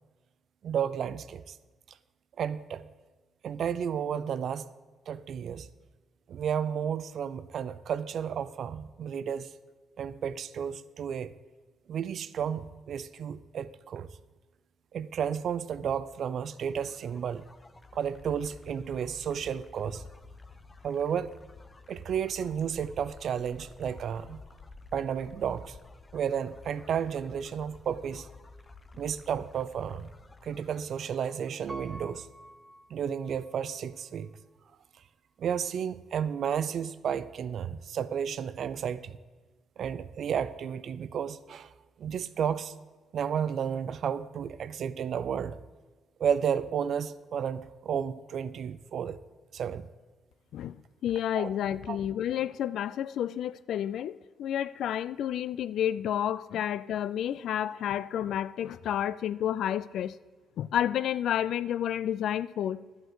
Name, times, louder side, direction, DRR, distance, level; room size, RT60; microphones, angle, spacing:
voice 1, 0.6-1.6 2.4-2.8 3.4-4.7 5.1-5.7 6.3-9.5 10.0-11.3 11.9-14.1 14.9-17.5 17.9-20.0 20.8-21.3 21.9-24.4 24.9-25.8 26.1-28.3 29.0-30.1 30.4-32.3 32.9-34.3 35.4-39.2 39.8-41.7 42.0-42.7 43.1-45.6 46.2-49.2 49.5-49.9 51.3-51.5 51.9-52.0, right 8 dB, 60° right, 0.4 m, -32 dB
sound 1, 16.4-32.0, left 3 dB, 25° left, 0.8 m, -52 dB
Piano, 31.7-33.7 34.2-34.3, right 1 dB, 15° right, 0.7 m, -47 dB
voice 2, 50.5-60.2 60.6-62.8, left 10 dB, 75° left, 0.3 m, -30 dB
11.5 x 7.9 x 4.7 m
cardioid pair, 90°, 0 cm